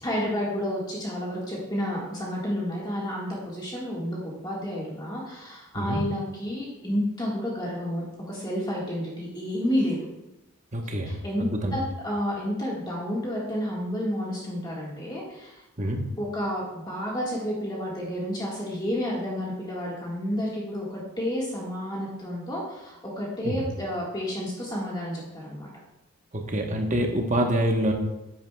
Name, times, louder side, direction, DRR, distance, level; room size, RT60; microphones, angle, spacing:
voice 1, 0.0-10.0 11.0-15.6 16.2-25.7, equal, 20° left, -4 dB, 1.6 m, -30 dB
voice 2, 10.7-11.8 15.8-16.1 23.4-23.6 26.3-27.9, equal, 35° right, 2 dB, 1.0 m, -26 dB
10.5 x 8.9 x 2.3 m, 0.96 s
head